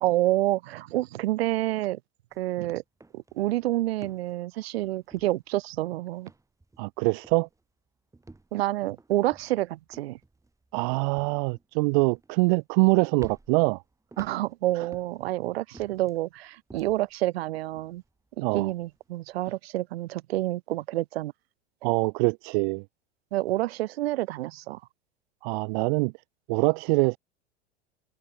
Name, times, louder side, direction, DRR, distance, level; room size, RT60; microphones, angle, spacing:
voice 1, 0.0-2.0 2.4-2.8 3.1-6.3 8.5-10.2 14.2-18.0 18.4-21.3 23.3-24.8, right 16 dB, 60° right, 1.5 m, -28 dB
sound 1, 2.3-2.5 2.8-5.8 6.1-7.0 7.2-7.6 8.1-12.8 13.2-15.3 15.7-17.2 17.5-19.6, right 2 dB, 10° right, 7.0 m, -51 dB
voice 2, 6.8-7.5 10.7-13.8 18.4-18.7 21.8-22.8 25.4-26.1 26.5-27.2, right 30 dB, 45° right, 0.5 m, -24 dB
figure-of-eight pair, 85°, 34 cm